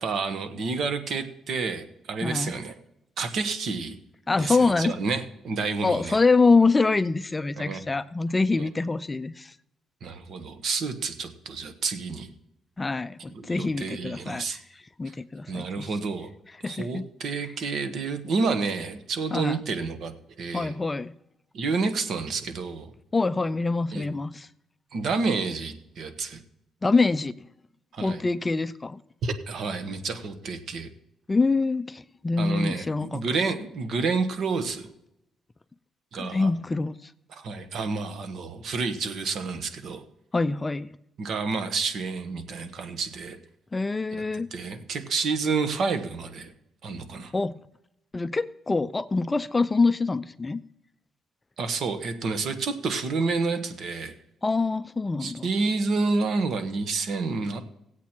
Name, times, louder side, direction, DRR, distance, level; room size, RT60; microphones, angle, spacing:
voice 1, 0.0-2.8 3.2-4.0 4.4-6.2 7.6-7.8 8.6-8.7 10.0-12.3 13.3-14.6 15.1-15.2 15.5-16.3 16.6-20.1 20.4-20.7 21.5-22.9 23.9-24.0 24.9-26.4 27.9-28.2 29.2-30.9 32.4-34.9 36.1-36.5 37.3-40.0 41.2-43.4 44.1-44.2 44.5-46.5 46.8-47.3 51.6-54.1 55.2-57.6, right 4 dB, 65° right, 1.3 m, -29 dB
voice 2, 2.2-2.5 4.3-4.9 5.8-9.5 12.8-14.6 15.0-15.9 16.6-17.0 19.3-19.6 20.5-21.1 23.1-24.5 26.8-27.3 28.0-29.0 31.3-33.2 36.2-37.1 40.3-40.9 43.7-44.5 47.3-47.6 48.1-50.6 54.4-55.5, left 3 dB, 20° left, 0.4 m, -25 dB
16.5 x 8.2 x 4.5 m
cardioid pair, 90°, 0 cm